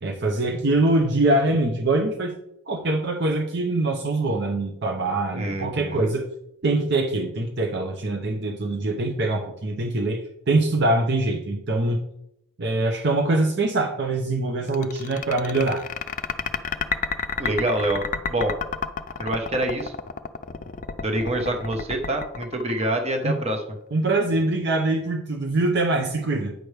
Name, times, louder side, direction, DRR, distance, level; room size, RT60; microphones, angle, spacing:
voice 1, 0.0-2.3 2.7-6.3 6.6-10.2 10.5-12.0 12.6-15.8 23.2-23.3 23.9-26.5, right 2 dB, 55° right, 3 dB, 0.7 m, -23 dB
voice 2, 5.3-6.1 17.4-18.0 18.3-18.5 19.2-19.9 21.0-23.6, right 1 dB, 30° right, 3 dB, 1.1 m, -26 dB
sound 1, 14.7-23.3, left 6 dB, 35° left, 0.5 m, -30 dB
9.1 x 6.1 x 3.3 m, 0.80 s
head